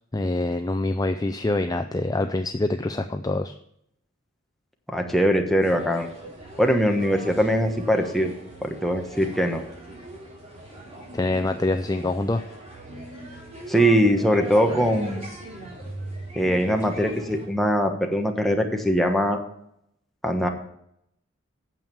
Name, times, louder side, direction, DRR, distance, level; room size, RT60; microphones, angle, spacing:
voice 1, 0.1-3.5 11.1-12.4, left 2 dB, 20° left, 7 dB, 0.4 m, -25 dB
voice 2, 4.9-6.1 6.6-8.3 8.6-9.6 13.7-15.2 16.3-19.4 20.2-20.5, equal, ahead, 2 dB, 1.2 m, -22 dB
sound 1, 5.6-17.5, right 1 dB, 30° right, 4.0 m, -39 dB
9.1 x 7.2 x 7.0 m, 0.75 s
head